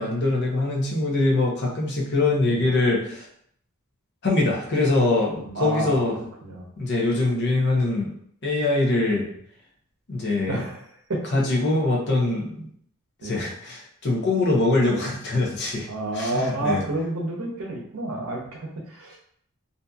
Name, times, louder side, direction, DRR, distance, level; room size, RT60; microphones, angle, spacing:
voice 1, 0.0-3.3 4.2-6.2 6.8-8.1 8.4-9.2 10.1-10.6 11.3-12.7 13.2-15.9 16.1-16.8, left 2 dB, 50° left, -2 dB, 0.6 m, -23 dB
voice 2, 5.4-6.0 6.4-6.7 10.5-10.8 11.1-11.2 13.2-13.5 15.9-19.2, right 1 dB, 75° right, 0 dB, 0.7 m, -29 dB
2.6 x 2.6 x 2.3 m, 0.65 s
head